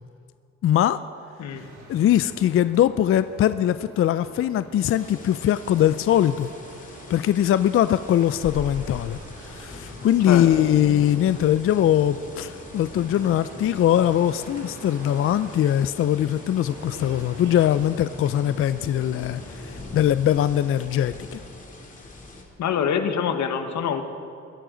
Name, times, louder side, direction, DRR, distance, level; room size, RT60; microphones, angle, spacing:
voice 1, 0.6-1.0 1.9-6.5 7.1-9.2 9.5-21.4, left 11 dB, 45° left, 13 dB, 0.4 m, -21 dB
sound 1, 1.5-21.5, right 2 dB, 70° right, 2.6 m, -44 dB
sound 2, 4.8-22.4, left 2 dB, 25° left, 2.2 m, -42 dB
voice 2, 22.6-24.0, left 7 dB, 70° left, 8 dB, 1.2 m, -25 dB
21.5 x 11.0 x 3.9 m, 2.6 s
cardioid pair, 90°, 30 cm